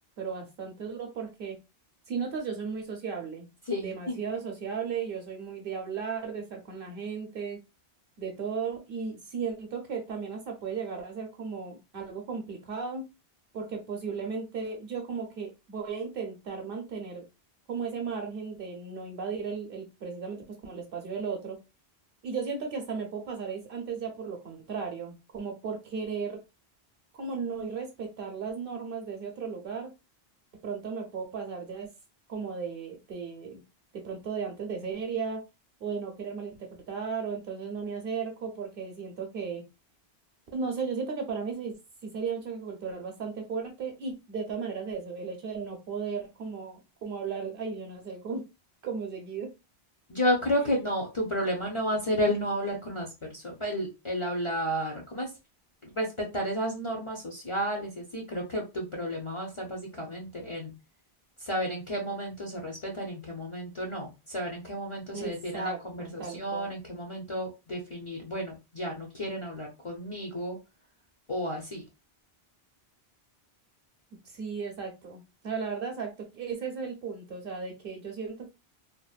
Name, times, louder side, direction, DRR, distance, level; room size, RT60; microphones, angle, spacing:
voice 1, 0.2-1.6 2.1-3.5 3.8-7.6 8.2-13.1 13.5-17.2 17.7-21.6 22.2-26.4 27.1-29.9 30.6-31.9 32.3-33.6 33.9-35.4 35.8-39.6 40.5-41.8 42.0-48.5 48.8-49.5 65.1-66.7 74.2-78.5, right 5 dB, 65° right, 3 dB, 0.8 m, -35 dB
voice 2, 3.7-4.2 50.1-55.3 55.8-60.7 61.4-70.6 71.3-71.8, equal, 40° left, -1 dB, 0.5 m, -32 dB
2.7 x 2.0 x 2.3 m, 0.26 s
omnidirectional pair, 1.1 m